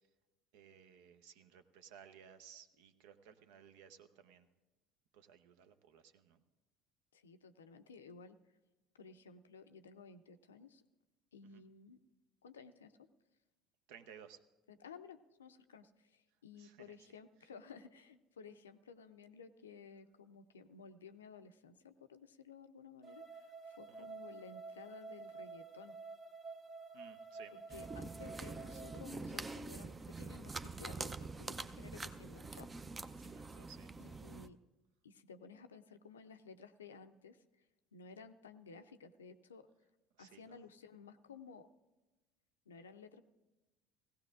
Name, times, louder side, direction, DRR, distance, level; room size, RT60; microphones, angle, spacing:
voice 1, 0.5-4.5 5.1-6.4 11.5-11.6 13.9-14.4 16.6-17.0 23.9-24.1 26.9-27.5 33.2-33.9 40.2-40.4, right 8 dB, 70° right, 11 dB, 0.7 m, -58 dB
voice 2, 7.1-8.4 9.0-10.8 11.3-12.0 12.4-13.0 14.7-26.0 27.5-32.7 33.3-33.4 34.0-34.6 35.0-37.4 37.9-39.7 40.2-41.7 42.7-43.2, left 5 dB, 85° left, 9 dB, 0.5 m, -55 dB
sound 1, 23.0-29.0, right 4 dB, 40° right, 1.3 m, -50 dB
sound 2, 27.7-34.5, right 3 dB, 25° right, 0.5 m, -45 dB
17.5 x 16.0 x 2.5 m, 1.1 s
hypercardioid pair, 65°, 0 cm